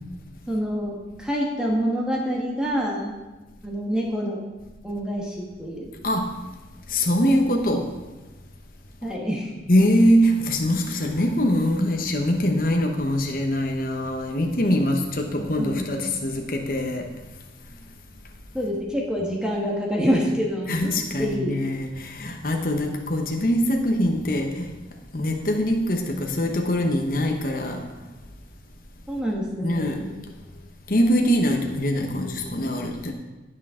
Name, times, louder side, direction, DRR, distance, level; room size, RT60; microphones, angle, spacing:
voice 1, 0.5-3.1 3.6-4.4 4.8-5.9 9.0-9.5 15.6-16.2 18.5-21.6 29.1-30.1, equal, 5° right, -3 dB, 1.5 m, -27 dB
voice 2, 6.0-6.4 6.9-8.0 9.7-17.1 20.7-24.7 25.1-27.9 29.6-30.0 30.9-33.1, equal, 50° left, 2 dB, 1.0 m, -23 dB
18.0 x 6.5 x 3.8 m, 1.1 s
head